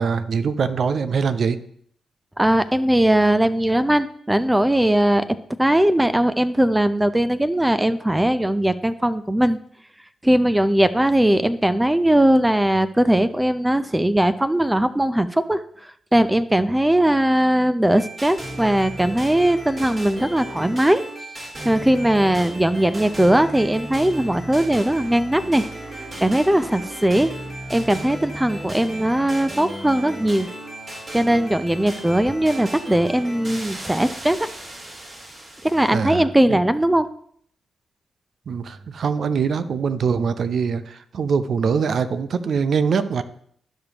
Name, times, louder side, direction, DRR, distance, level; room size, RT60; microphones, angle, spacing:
voice 1, 0.0-1.6 35.9-36.6 38.5-43.2, right 6 dB, 65° right, 12 dB, 0.6 m, -23 dB
voice 2, 2.4-5.2 5.6-9.6 10.2-21.0 21.6-25.7 26.2-27.3 27.7-30.5 31.1-34.4 35.6-37.1, right 1 dB, 15° right, 11 dB, 0.5 m, -19 dB
sound 1, 17.9-36.0, right 1 dB, 45° right, 3.7 m, -35 dB
12.5 x 5.2 x 2.9 m, 0.63 s
hypercardioid pair, 40°, 0 cm